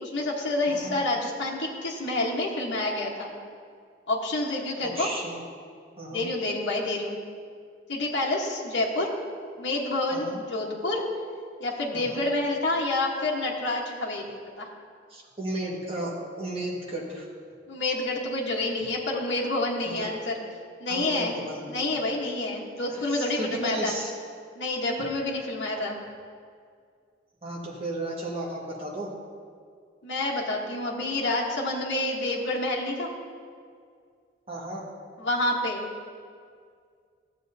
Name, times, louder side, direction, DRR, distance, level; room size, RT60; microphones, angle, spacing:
voice 1, 0.0-3.3 4.1-5.1 6.1-7.2 7.9-9.1 9.6-11.0 11.6-14.7 17.7-20.4 20.8-21.3 21.7-23.9 24.5-26.0 30.0-33.1 35.2-35.9, left 2 dB, 70° left, -4 dB, 1.2 m, -28 dB
voice 2, 0.7-1.0 4.8-5.4 6.0-6.3 10.1-10.4 11.9-12.2 15.1-17.3 19.9-20.1 20.9-21.6 22.9-24.1 27.4-29.1 34.5-34.8, right 1 dB, 30° right, -4 dB, 1.6 m, -34 dB
14.5 x 7.6 x 2.7 m, 2.1 s
head